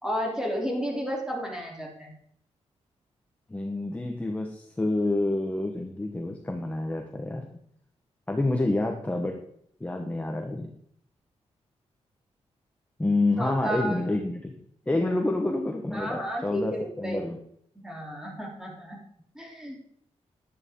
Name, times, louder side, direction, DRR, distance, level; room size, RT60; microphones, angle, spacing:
voice 1, 0.0-2.1 13.4-14.1 14.9-15.2 15.9-17.2 17.7-19.0 19.3-19.8, equal, 5° right, -2 dB, 3.3 m, -33 dB
voice 2, 3.5-7.4 8.3-9.4 9.8-10.7 13.0-14.5 14.9-17.4, left 2 dB, 10° left, 3 dB, 1.1 m, -28 dB
11.0 x 10.5 x 3.7 m, 0.69 s
wide cardioid pair, 110°, 11 cm